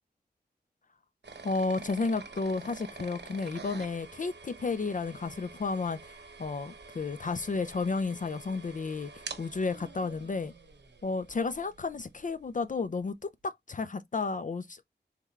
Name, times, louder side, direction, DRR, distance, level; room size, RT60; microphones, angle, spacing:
sound 1, 1.2-12.0, right 4 dB, 80° right, 0.9 m, -47 dB
voice 1, 1.4-10.5 11.0-14.8, left 4 dB, 50° left, 0.4 m, -32 dB
3.5 x 3.4 x 3.1 m
wide cardioid pair, 45°, 18 cm